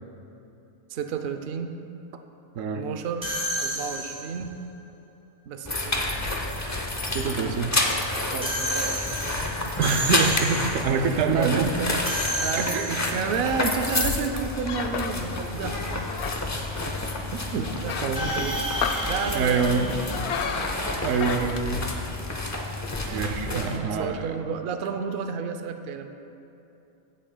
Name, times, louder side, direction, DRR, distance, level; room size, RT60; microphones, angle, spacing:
voice 1, 0.9-1.7 2.7-3.3 3.6-4.6 5.5-6.4 8.3-9.7 11.1-11.9 12.4-16.0 17.5-18.0 18.3-18.6 19.0-20.0 23.0-26.1, right 6 dB, 60° right, 6 dB, 0.7 m, -31 dB
sound 1, 3.2-4.5 8.4-10.9 12.0-13.3 18.1-20.7, equal, 5° right, 1.4 m, -31 dB
sound 2, 5.6-23.8, left 2 dB, 20° left, 0.5 m, -29 dB
voice 2, 7.1-7.7 9.8-11.7 12.7-12.9 17.5-17.7 18.0-18.3 19.3-19.9 21.0-21.8 23.1-24.3, right 5 dB, 85° right, 6 dB, 1.0 m, -25 dB
sound 3, 13.9-22.5, left 6 dB, 65° left, 0.8 m, -35 dB
16.0 x 7.6 x 2.2 m, 2.9 s
omnidirectional pair, 1.3 m